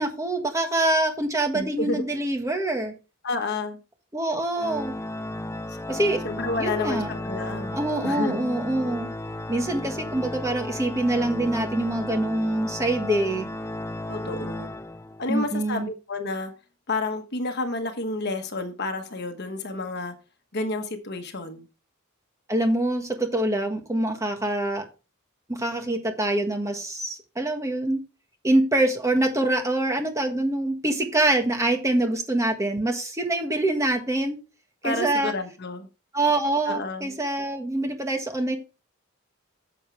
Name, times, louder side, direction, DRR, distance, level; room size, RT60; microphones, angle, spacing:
voice 1, 0.0-2.9 4.1-4.9 5.9-6.2 6.6-7.1 7.7-9.1 9.5-13.5 15.3-15.9 22.5-24.8 25.5-28.0 28.4-34.4 34.8-35.3 36.1-38.6, right 1 dB, 15° right, 1.5 m, -25 dB
voice 2, 1.5-2.0 3.2-3.8 5.7-5.8 6.2-8.5 14.1-14.7 15.2-16.5 16.9-20.1 20.5-21.7 34.8-35.9 36.7-37.2, left 2 dB, 50° left, 1.3 m, -30 dB
Organ, 4.5-15.4, left 1 dB, 10° left, 0.4 m, -34 dB
9.9 x 7.3 x 3.3 m
head